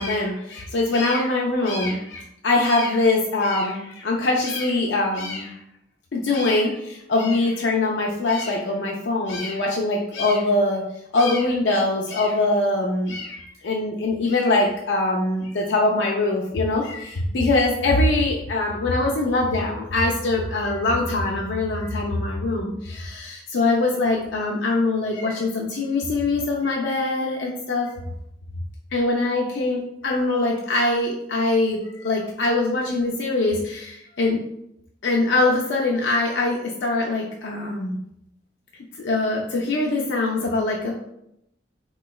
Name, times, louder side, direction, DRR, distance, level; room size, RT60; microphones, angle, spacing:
voice 1, 0.0-5.6 6.1-10.8 11.1-27.9 28.9-34.4 35.0-38.0 39.0-40.9, left 2 dB, 65° left, -2 dB, 0.4 m, -23 dB
3.7 x 3.0 x 2.3 m, 0.79 s
head